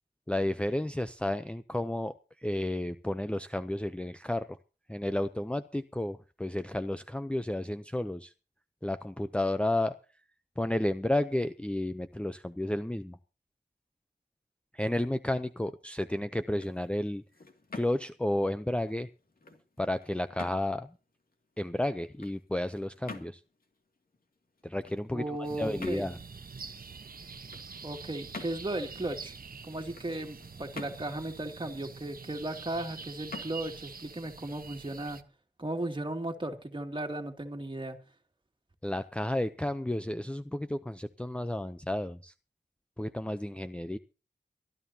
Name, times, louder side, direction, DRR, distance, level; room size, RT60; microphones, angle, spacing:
voice 1, 0.3-4.6 4.9-8.3 8.8-9.9 10.6-13.2 14.7-17.2 17.7-19.1 19.8-21.0 21.6-23.4 24.6-26.2 38.8-42.3 43.0-44.0, left 1 dB, 5° left, 0.6 m, -32 dB
sound 1, 16.4-35.2, left 3 dB, 60° left, 2.5 m, -50 dB
voice 2, 25.1-26.1 27.8-29.3 29.6-35.2 35.6-38.0, right 1 dB, 30° right, 2.6 m, -36 dB
sound 2, 25.4-35.2, right 5 dB, 60° right, 1.2 m, -46 dB
23.5 x 13.0 x 2.9 m
wide cardioid pair, 75°, 17 cm